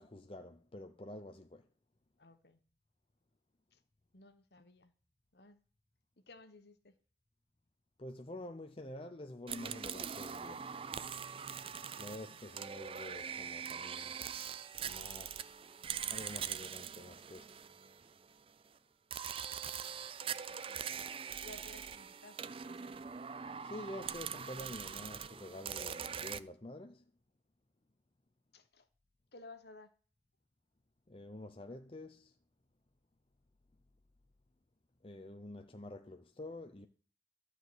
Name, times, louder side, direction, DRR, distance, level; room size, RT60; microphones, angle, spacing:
voice 1, 0.0-1.6 8.0-10.7 12.0-14.2 14.8-15.5 16.1-17.5 23.6-27.0 31.1-32.3 35.0-36.9, left 1 dB, 30° left, 0.7 m, -48 dB
voice 2, 2.2-2.6 3.7-3.8 4.1-4.9 5.3-5.6 6.2-7.0 12.3-12.7 20.2-20.8 21.4-23.1 28.5-28.9 29.3-29.9, left 2 dB, 60° left, 1.4 m, -57 dB
sound 1, 9.5-18.3 19.1-26.4, right 7 dB, 30° right, 0.4 m, -43 dB
12.5 x 4.9 x 7.9 m
head